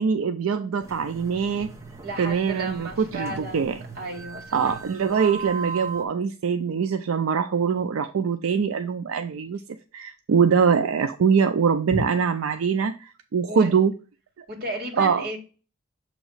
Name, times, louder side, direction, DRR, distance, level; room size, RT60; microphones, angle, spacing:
voice 1, 0.0-1.7 2.2-3.8 4.5-9.6 9.9-13.9 14.4-14.5 15.0-15.3, right 6 dB, 75° right, 0.4 m, -23 dB
sound 1, 0.8-6.0, right 5 dB, 15° right, 0.8 m, -38 dB
voice 2, 2.0-4.7 11.9-12.0 13.5-13.7 14.5-15.4, right 1 dB, 45° right, 1.9 m, -33 dB
7.1 x 3.0 x 5.5 m
head